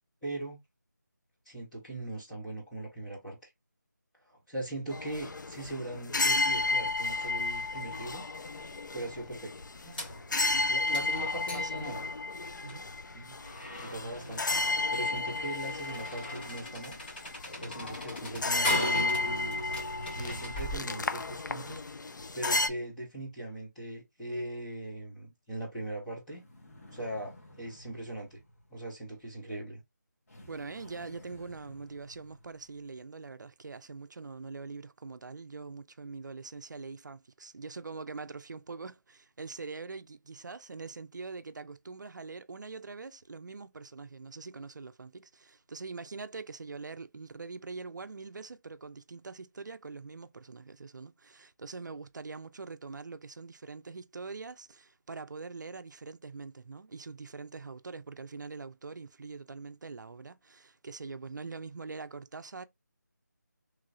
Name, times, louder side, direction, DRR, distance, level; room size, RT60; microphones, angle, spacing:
voice 1, 0.2-0.6 1.5-3.5 4.3-8.2 8.9-9.5 10.7-12.0 13.1-13.3 13.8-14.4 14.9-17.0 17.6-19.6 20.2-21.8 22.3-26.4 26.9-28.4 28.7-29.8, right 1 dB, ahead, 0.5 m, -40 dB
sound 1, 4.9-22.7, left 3 dB, 80° left, 0.4 m, -33 dB
sound 2, 6.6-20.8, left 1 dB, 30° left, 1.4 m, -40 dB
voice 2, 11.5-12.0 12.6-12.9 30.5-62.7, right 4 dB, 70° right, 0.4 m, -43 dB
sound 3, 26.3-29.4 30.3-33.0, left 1 dB, 50° left, 1.2 m, -54 dB
3.1 x 3.0 x 2.4 m
figure-of-eight pair, 170°, 10 cm